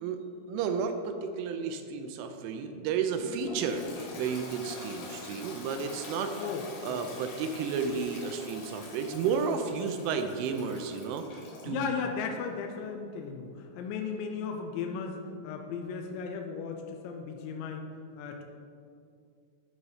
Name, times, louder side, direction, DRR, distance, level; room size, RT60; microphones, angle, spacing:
voice 1, 0.0-3.9 4.1-6.3 6.8-11.9, right 6 dB, 85° right, 7 dB, 2.9 m, -32 dB
Toilet flush, 3.2-11.7, left 3 dB, 70° left, 2.5 m, -44 dB
voice 2, 6.4-7.0 11.6-17.9 18.2-18.4, left 5 dB, 85° left, 3 dB, 2.6 m, -36 dB
11.0 x 4.0 x 4.8 m, 2.4 s
omnidirectional pair, 5.8 m